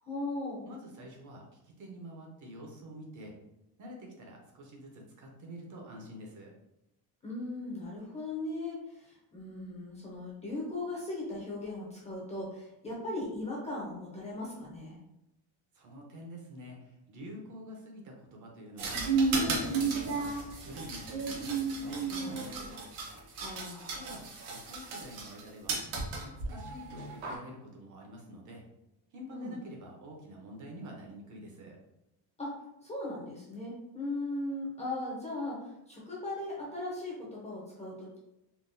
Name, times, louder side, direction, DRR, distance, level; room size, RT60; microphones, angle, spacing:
voice 1, 0.0-0.7 7.2-15.0 23.4-24.0 29.3-29.6 32.4-32.5 32.8-38.2, left 2 dB, 15° left, -5 dB, 0.5 m, -38 dB
voice 2, 0.6-3.3 3.8-6.5 15.7-19.1 19.3-20.3 20.6-22.8 23.9-25.8 26.2-28.6 29.1-31.8, equal, 40° right, 0 dB, 0.6 m, -47 dB
sound 1, 18.8-25.4 25.7-27.4, right 4 dB, 85° right, 1.0 m, -33 dB
3.7 x 2.2 x 2.5 m, 0.87 s
cardioid pair, 165°, 48 cm